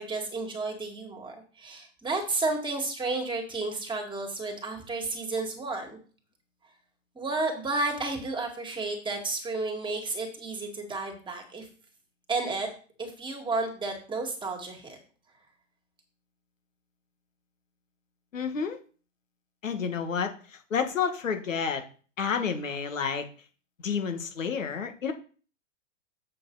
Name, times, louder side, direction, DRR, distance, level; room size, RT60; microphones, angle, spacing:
voice 1, 0.0-6.0 7.2-11.7 12.3-12.7 13.0-15.0, right 3 dB, 10° right, 2 dB, 2.3 m, -32 dB
voice 2, 18.3-18.8 19.6-20.3 20.7-21.8 22.2-23.3 23.8-25.1, left 6 dB, 85° left, 6 dB, 1.8 m, -29 dB
7.4 x 6.6 x 4.0 m, 0.40 s
hypercardioid pair, 115°, 38 cm